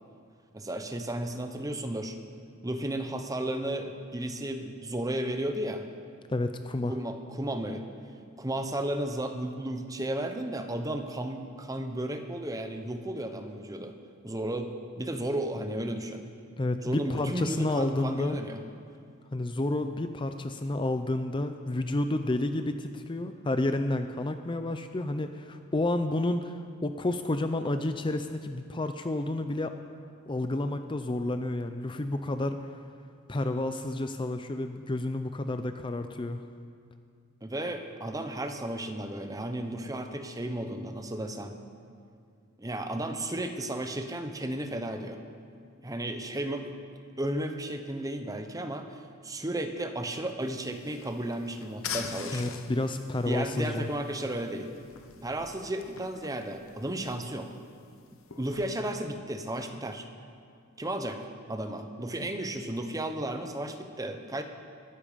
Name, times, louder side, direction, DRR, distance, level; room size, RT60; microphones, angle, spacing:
voice 1, 0.5-2.2 2.6-5.9 6.9-7.8 8.4-14.0 14.2-16.2 16.8-18.6 37.4-41.5 42.6-45.2 45.8-46.7 47.2-48.9 49.2-52.6 53.2-54.7 55.2-57.6 58.4-60.1 60.8-64.4, right 1 dB, 15° right, 6 dB, 1.0 m, -34 dB
voice 2, 6.3-6.9 16.6-18.4 19.3-29.8 30.3-32.6 33.3-36.4 52.3-53.9, left 2 dB, 25° left, 8 dB, 0.5 m, -30 dB
sound 1, 50.4-58.7, left 7 dB, 70° left, 1.1 m, -44 dB
20.0 x 14.0 x 5.2 m, 2.3 s
head